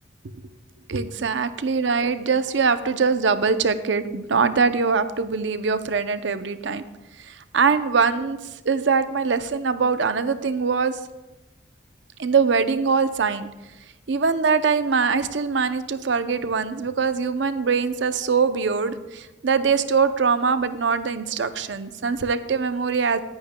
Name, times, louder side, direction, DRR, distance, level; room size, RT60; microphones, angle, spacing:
voice 1, 0.9-6.8 7.5-8.4 8.7-11.0 12.2-13.5 14.1-23.2, right 5 dB, 70° right, 11 dB, 0.6 m, -22 dB
17.5 x 10.0 x 2.2 m, 1.0 s
head